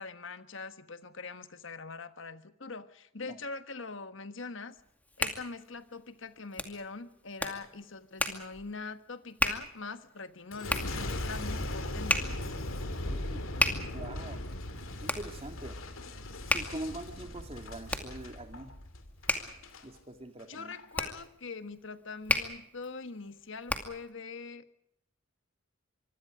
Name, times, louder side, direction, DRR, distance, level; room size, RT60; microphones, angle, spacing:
voice 1, 0.0-4.8 5.2-12.3 20.5-24.8, left 4 dB, 65° left, 11 dB, 1.4 m, -43 dB
Hands, 4.8-24.1, left 2 dB, 10° left, 2.3 m, -36 dB
Boom, 10.5-19.8 20.4-20.8, left 1 dB, 85° left, 2.8 m, -38 dB
voice 2, 11.9-12.3 13.0-13.4 13.9-14.4 15.0-15.8 16.5-18.7 19.8-20.8, right 1 dB, 30° right, 6 dB, 2.2 m, -43 dB
25.0 x 24.5 x 5.0 m, 0.73 s
head